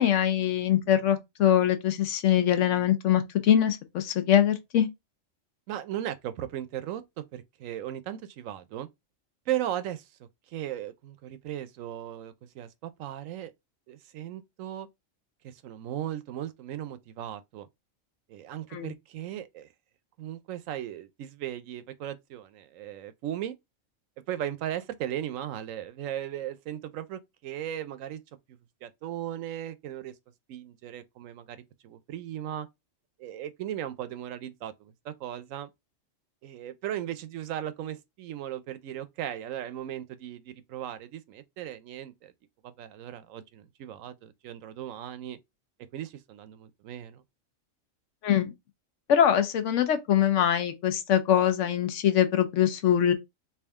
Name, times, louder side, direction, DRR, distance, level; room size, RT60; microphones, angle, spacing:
voice 1, 0.0-4.9 18.7-18.9 48.2-48.5 49.1-53.1, left 10 dB, 70° left, 0.9 m, -23 dB
voice 2, 5.7-8.9 9.5-13.5 13.9-14.9 15.4-17.7 18.3-19.7 20.2-23.5 24.3-28.2 28.5-30.1 30.5-32.7 33.2-35.7 36.4-42.3 42.6-45.4 45.9-47.2, right 11 dB, 80° right, 1.0 m, -37 dB
3.5 x 2.6 x 3.4 m
omnidirectional pair, 1.4 m